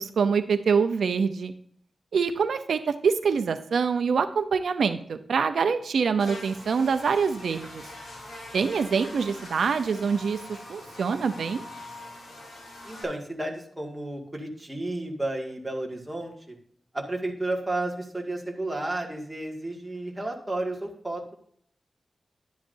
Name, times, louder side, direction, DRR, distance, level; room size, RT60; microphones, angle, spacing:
voice 1, 0.0-1.5 2.1-7.8 8.5-11.6, right 5 dB, 85° right, 9 dB, 0.7 m, -25 dB
Buzz, 6.2-13.0, left 1 dB, 65° left, 4.6 m, -43 dB
voice 2, 12.8-16.6 16.9-21.3, right 2 dB, 10° right, -1 dB, 2.1 m, -32 dB
11.0 x 10.5 x 2.7 m, 0.62 s
wide cardioid pair, 150°, 0 cm